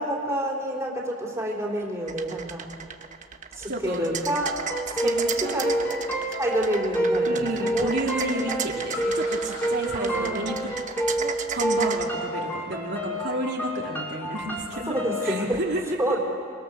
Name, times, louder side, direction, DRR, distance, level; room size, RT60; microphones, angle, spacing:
voice 1, 0.0-2.7 3.6-4.6 4.9-5.7 6.4-7.9 9.9-10.6 14.9-15.6 16.0-16.2, right 1 dB, 15° right, -3 dB, 4.0 m, -28 dB
sound 1, 2.1-12.1, right 7 dB, 40° right, 1.2 m, -34 dB
voice 2, 3.7-4.1 5.0-5.8 7.2-10.6 10.9-14.9 15.2-16.0, right 1 dB, 60° right, -2 dB, 2.7 m, -31 dB
sound 2, 4.4-15.4, right 1 dB, 10° left, 3.3 m, -29 dB
Car, 6.1-13.5, left 2 dB, 70° left, 7.8 m, -45 dB
29.0 x 23.0 x 6.8 m, 2.4 s
head